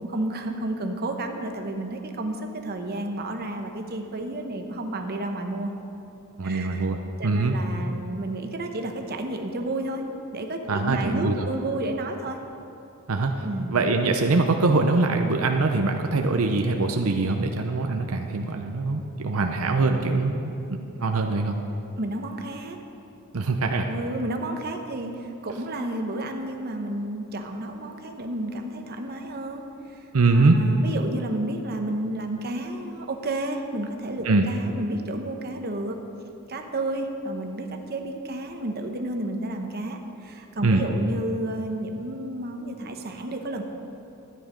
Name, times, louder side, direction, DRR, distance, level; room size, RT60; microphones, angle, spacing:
voice 1, 0.0-5.7 6.4-6.9 7.2-10.0 10.3-12.4 13.4-13.7 22.0-22.8 23.9-30.1 30.3-36.0 36.5-43.6, right 1 dB, 45° right, 4 dB, 0.9 m, -31 dB
voice 2, 6.4-7.6 10.7-11.5 13.1-20.4 20.7-21.6 23.3-23.9 30.1-30.6 34.2-34.5 40.6-40.8, right 3 dB, 75° right, 4 dB, 0.7 m, -23 dB
13.0 x 9.5 x 5.1 m, 2.8 s
head